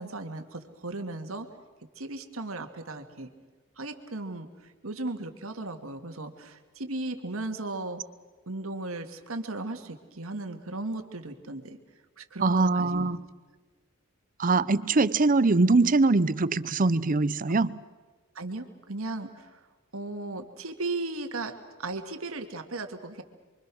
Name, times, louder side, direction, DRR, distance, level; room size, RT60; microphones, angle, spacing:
voice 1, 0.0-1.5 2.0-3.3 3.8-8.0 8.5-11.8 12.2-13.1 18.4-19.6 19.9-21.5 21.8-23.2, right 2 dB, 85° right, 6 dB, 2.3 m, -36 dB
voice 2, 12.4-13.2 14.4-17.8, right 3 dB, 40° right, 16 dB, 0.7 m, -23 dB
28.5 x 24.0 x 6.3 m, 1.3 s
head